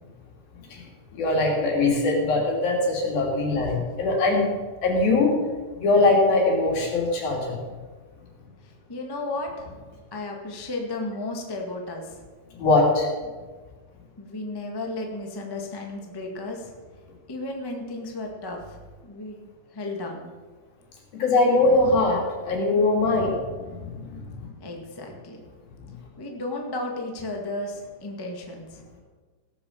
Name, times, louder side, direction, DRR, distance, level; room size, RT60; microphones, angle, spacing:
voice 1, 1.1-4.5 4.8-5.4 5.7-7.6 12.6-13.1 21.1-24.5 25.8-25.9, left 2 dB, 75° left, -2 dB, 4.8 m, -22 dB
voice 2, 8.6-9.7 10.1-12.2 14.2-16.7 17.3-18.8 19.0-19.5 19.7-20.3 24.6-25.4 26.2-28.8, left 2 dB, 20° left, 1 dB, 0.5 m, -34 dB
17.5 x 7.1 x 7.3 m, 1.4 s
omnidirectional pair, 4.2 m